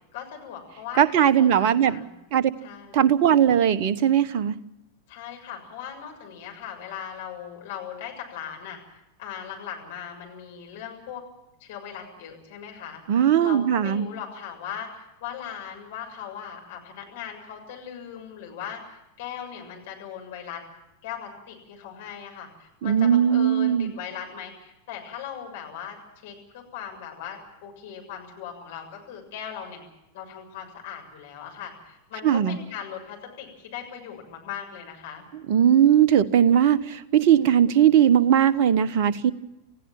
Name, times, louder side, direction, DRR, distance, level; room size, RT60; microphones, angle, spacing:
voice 1, 0.1-1.0 1.4-2.2 2.6-3.0 5.1-8.8 9.2-11.2 11.6-13.0 13.4-20.6 21.0-26.0 26.2-29.8 30.1-35.3, left 8 dB, 55° left, 2 dB, 7.0 m, -39 dB
voice 2, 1.0-2.0 2.3-2.5 2.9-4.6 13.1-14.1 22.8-23.9 32.2-32.6 35.5-39.3, right 9 dB, 45° right, 14 dB, 1.1 m, -19 dB
28.5 x 16.0 x 7.6 m, 0.90 s
figure-of-eight pair, 90°, 0 cm